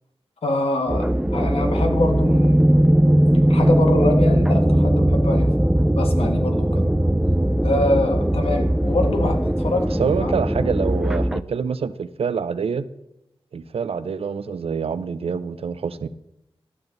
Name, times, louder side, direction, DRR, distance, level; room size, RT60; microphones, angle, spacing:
voice 1, 0.4-2.6 3.5-5.5 5.9-6.8 7.6-10.3, left 2 dB, 80° left, 3 dB, 1.7 m, -24 dB
sound 1, 0.9-11.4, right 1 dB, 5° right, 0.3 m, -19 dB
voice 2, 10.0-12.9 13.5-16.1, right 6 dB, 80° right, 14 dB, 0.5 m, -26 dB
12.0 x 8.9 x 3.9 m, 0.86 s
wide cardioid pair, 75°, 10 cm